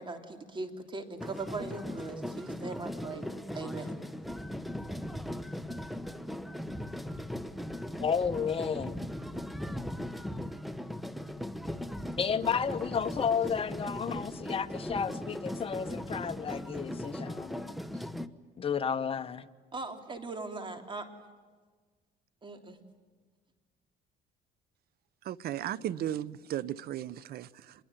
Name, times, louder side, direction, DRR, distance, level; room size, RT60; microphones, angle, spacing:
voice 1, 0.0-3.3 3.5-3.9 19.7-21.0 22.4-22.8, right 3 dB, 30° right, 6 dB, 3.3 m, -39 dB
sound 1, 1.2-18.3, left 1 dB, ahead, 1.1 m, -39 dB
voice 2, 8.0-9.0 12.2-17.7 18.6-19.5, left 6 dB, 35° left, 10 dB, 1.3 m, -32 dB
voice 3, 25.2-27.7, right 11 dB, 65° right, 19 dB, 0.9 m, -35 dB
26.0 x 22.0 x 9.2 m, 1.4 s
cardioid pair, 110°, 17 cm